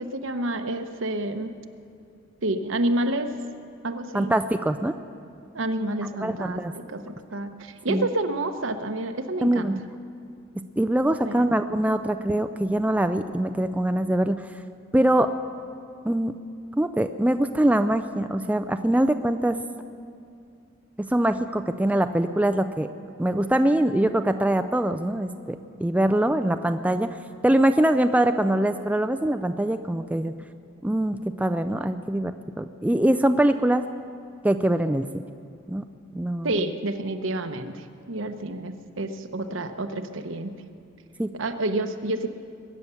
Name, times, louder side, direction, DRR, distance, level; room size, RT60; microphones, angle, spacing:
voice 1, 0.0-1.5 2.4-3.3 3.8-4.3 5.5-9.7 11.2-11.4 36.4-40.5 41.4-42.3, right 1 dB, 70° right, 8 dB, 0.9 m, -29 dB
voice 2, 4.1-5.0 6.2-6.8 7.9-8.0 9.4-9.8 10.8-14.5 14.9-15.3 16.0-16.3 16.8-19.6 21.0-22.9 23.2-27.1 27.4-30.3 30.8-33.9 34.4-35.1 35.7-35.8 36.2-36.5 41.2-41.3, right 1 dB, 5° right, 9 dB, 0.3 m, -23 dB
22.0 x 9.3 x 7.0 m, 2.5 s
head